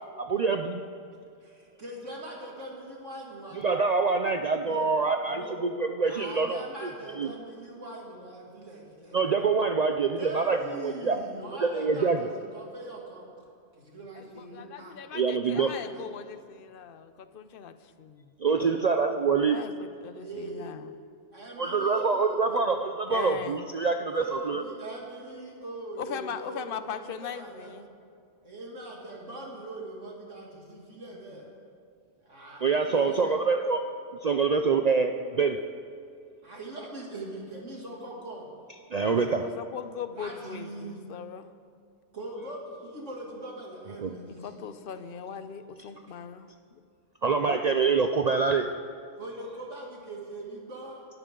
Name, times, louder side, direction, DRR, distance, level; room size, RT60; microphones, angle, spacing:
voice 1, 0.2-0.8 3.6-6.6 7.2-7.3 9.1-11.2 11.6-12.2 15.1-15.7 18.4-19.6 21.6-24.6 32.6-33.8 34.2-35.6 38.9-39.4 44.0-44.1 47.2-48.7, right 4 dB, 50° right, 6 dB, 0.5 m, -25 dB
voice 2, 1.4-3.6 4.6-4.9 5.3-5.6 6.0-9.5 10.2-13.3 13.7-15.0 15.5-16.1 18.5-18.7 20.1-20.8 21.3-22.6 24.2-27.7 28.4-31.5 32.2-33.4 36.4-38.5 38.9-39.4 40.1-41.0 42.1-44.6 45.9-46.0 49.2-51.1, right 2 dB, 90° right, -2 dB, 3.0 m, -41 dB
voice 3, 14.1-18.3 19.4-20.9 23.1-23.6 26.0-27.9 39.3-41.5 44.4-46.8, left 7 dB, 55° left, 11 dB, 0.9 m, -40 dB
23.5 x 13.0 x 3.8 m, 2.3 s
omnidirectional pair, 1.2 m